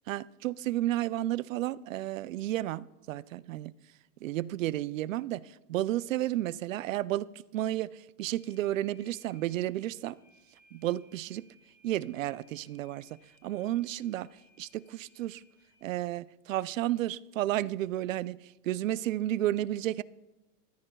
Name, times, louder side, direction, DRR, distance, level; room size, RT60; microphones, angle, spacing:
voice 1, 0.1-3.7 4.2-10.1 10.7-11.4 11.8-13.1 13.4-14.3 14.6-15.4 15.8-18.4 18.6-20.0, right 14 dB, 60° right, 0.5 m, -32 dB
sound 1, 8.3-16.1, left 2 dB, 20° left, 1.6 m, -65 dB
22.5 x 14.5 x 2.3 m
supercardioid pair, 170°, 46 cm